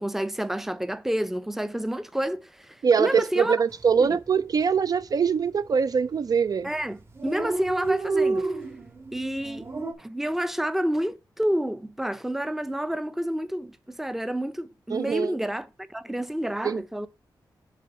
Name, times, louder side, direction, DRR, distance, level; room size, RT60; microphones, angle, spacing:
voice 1, 0.0-3.6 4.0-4.2 6.6-8.6 9.1-9.7 10.0-17.1, equal, 5° right, 0.6 m, -29 dB
voice 2, 2.8-6.7 14.9-15.4 16.6-16.8, right 6 dB, 50° right, 0.4 m, -23 dB
Dog, 3.7-4.0 4.3-4.4 4.6-5.3 5.9-6.2 6.5-6.6 6.7-6.8 7.0-9.9, right 3 dB, 35° right, 2.0 m, -29 dB
7.5 x 3.8 x 6.5 m
wide cardioid pair, 115°, 8 cm